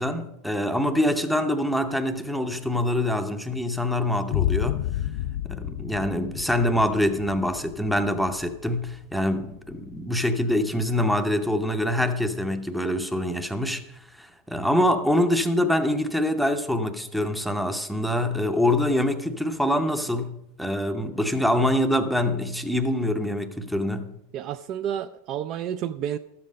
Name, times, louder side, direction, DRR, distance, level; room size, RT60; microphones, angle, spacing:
voice 1, 0.0-4.8 5.4-24.2, left 1 dB, ahead, 0.6 m, -25 dB
sound 1, 4.3-11.7, left 11 dB, 60° left, 0.3 m, -32 dB
voice 2, 24.3-26.2, right 10 dB, 35° right, 0.3 m, -30 dB
12.5 x 7.7 x 5.2 m
supercardioid pair, 155°, 0 cm